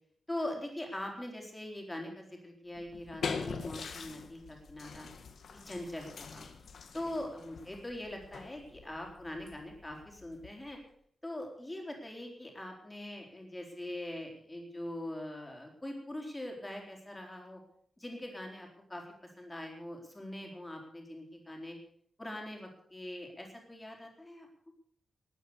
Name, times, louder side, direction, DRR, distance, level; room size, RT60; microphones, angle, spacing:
voice 1, 0.3-5.1 5.5-6.5 6.9-10.8 11.2-17.6 18.0-19.0 19.4-21.8 22.2-24.5, left 1 dB, 10° left, 1 dB, 4.1 m, -42 dB
sound 1, 2.7-10.8, left 5 dB, 70° left, 1.8 m, -43 dB
20.0 x 9.2 x 6.9 m, 0.63 s
wide cardioid pair, 170°, 0 cm